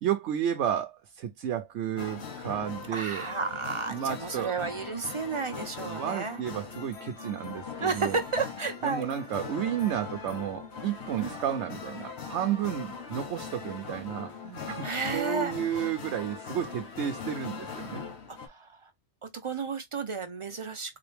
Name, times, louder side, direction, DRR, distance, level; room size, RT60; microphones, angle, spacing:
voice 1, 0.0-3.2 3.9-4.5 5.8-8.2 8.8-14.9 15.1-18.0, right 10 dB, 90° right, 0.9 m, -32 dB
Merry Go Round, 2.0-18.5, left 5 dB, 70° left, 1.2 m, -40 dB
voice 2, 2.9-6.4 7.8-9.1 11.2-11.4 14.8-15.9 18.3-18.9 19.2-21.0, right 4 dB, 50° right, 0.3 m, -32 dB
3.8 x 2.9 x 3.3 m
omnidirectional pair, 1.2 m